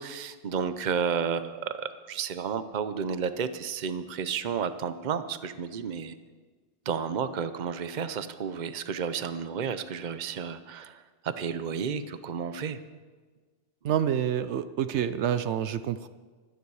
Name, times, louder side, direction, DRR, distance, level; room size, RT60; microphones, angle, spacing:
voice 1, 0.0-1.6 2.1-6.1 6.9-12.8, right 6 dB, 45° right, 11 dB, 0.8 m, -32 dB
voice 2, 13.8-16.1, right 9 dB, 75° right, 12 dB, 0.9 m, -28 dB
24.5 x 9.8 x 4.8 m, 1.5 s
omnidirectional pair, 1.2 m